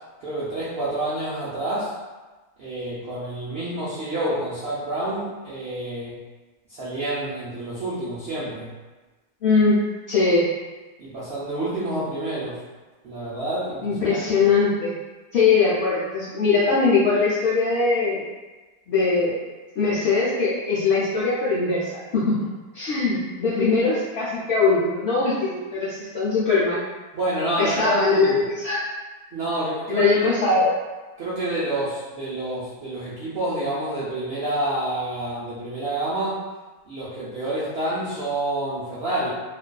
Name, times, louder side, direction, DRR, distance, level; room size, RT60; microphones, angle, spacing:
voice 1, 0.2-1.9 2.6-6.1 6.7-8.7 11.0-12.6 13.0-14.5 27.1-28.4 29.3-30.1 30.5-30.6 31.2-36.4 36.9-39.3, right 1 dB, 70° right, -10 dB, 0.6 m, -28 dB
voice 2, 9.4-9.8 10.1-10.5 13.8-14.9 15.3-18.2 18.9-19.4 19.8-22.4 22.7-26.8 27.6-28.8 29.9-30.7, left 4 dB, 70° left, -9 dB, 0.6 m, -21 dB
2.5 x 2.3 x 2.2 m, 1.2 s
omnidirectional pair, 1.6 m